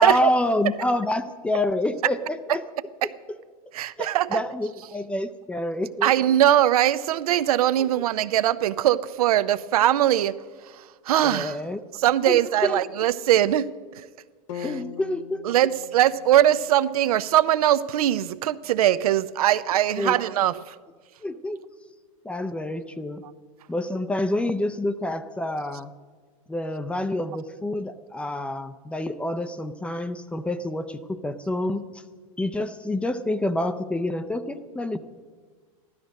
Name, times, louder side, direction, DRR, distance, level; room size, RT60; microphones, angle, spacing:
voice 1, 0.0-2.6 4.0-6.1 11.2-11.8 12.3-12.8 14.6-15.4 20.0-20.2 21.2-21.6 22.2-23.2 23.7-25.9 26.5-31.8 32.4-35.0, left 1 dB, 5° left, 11 dB, 0.4 m, -27 dB
voice 2, 3.7-4.3 6.0-10.3 11.1-11.6 12.0-13.7 14.5-14.7 15.4-20.5, right 12 dB, 85° right, 14 dB, 0.6 m, -21 dB
sound 1, 14.5-18.6, left 8 dB, 60° left, 0.8 m, -42 dB
14.5 x 12.0 x 6.3 m, 1.5 s
supercardioid pair, 145°, 18 cm